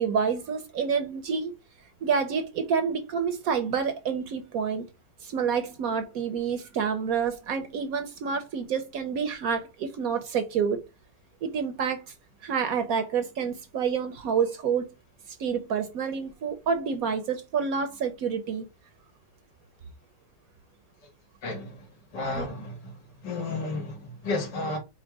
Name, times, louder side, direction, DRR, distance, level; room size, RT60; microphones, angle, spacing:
voice 1, 0.0-1.5 2.0-4.9 5.2-10.8 11.4-12.1 12.4-14.9 15.4-18.7 22.3-22.5, right 6 dB, 65° right, 1.0 m, -28 dB
voice 2, 21.4-21.8 22.1-22.9 23.2-24.8, left 2 dB, 80° left, 2.1 m, -32 dB
4.5 x 2.1 x 4.7 m
omnidirectional pair, 1.8 m